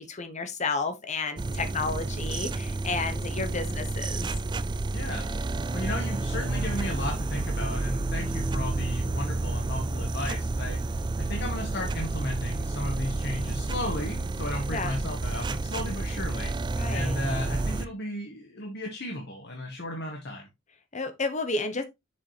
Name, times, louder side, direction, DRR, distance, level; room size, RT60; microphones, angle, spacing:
voice 1, 0.0-4.3 14.7-14.9 16.7-17.2 20.9-21.8, left 3 dB, 35° left, 0.8 m, -32 dB
sound 1, 1.4-17.9, right 2 dB, 20° right, 0.3 m, -30 dB
voice 2, 4.9-5.3 5.7-10.8 11.2-16.5 16.9-20.5, left 1 dB, 50° left, 1.4 m, -34 dB
7.0 x 5.3 x 3.2 m
head